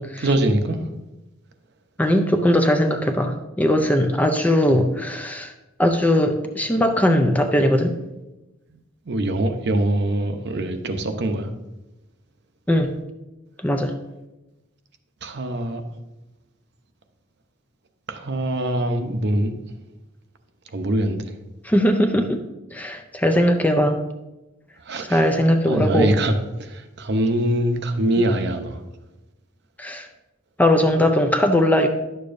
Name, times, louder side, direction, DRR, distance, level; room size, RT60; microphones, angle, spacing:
voice 1, 0.2-0.8 4.7-4.8 9.1-11.5 15.2-15.8 18.1-19.5 20.7-21.2 24.8-25.3 25.7-26.3 26.6-28.8, right 1 dB, 55° right, 6 dB, 0.7 m, -23 dB
voice 2, 2.0-5.5 5.8-7.9 12.7-13.0 13.6-13.9 21.6-22.4 22.7-24.0 25.1-26.1 29.8-30.1 30.6-31.9, left 1 dB, 10° left, 5 dB, 0.4 m, -19 dB
10.5 x 6.8 x 2.6 m, 1.0 s
head